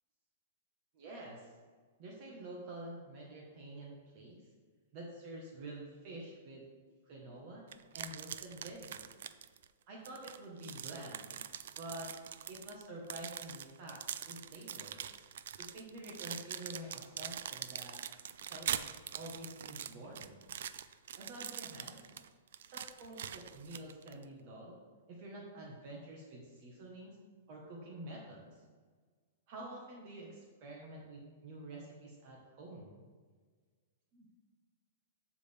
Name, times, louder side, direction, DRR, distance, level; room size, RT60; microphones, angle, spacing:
voice 1, 0.9-1.5 2.0-4.5 4.9-6.7 7.0-7.6 7.9-9.0 9.9-11.4 11.8-12.1 12.5-15.0 15.6-18.0 18.5-18.7 19.1-20.4 21.1-22.1 22.6-24.8 25.1-27.2 27.5-28.6 29.5-33.0 34.1-34.3, right 1 dB, 35° right, -2 dB, 1.4 m, -48 dB
sound 1, 7.7-9.7 10.0-24.2, right 9 dB, 65° right, 0.4 m, -43 dB
14.0 x 5.0 x 3.5 m, 1.5 s
hypercardioid pair, 170°, 0 cm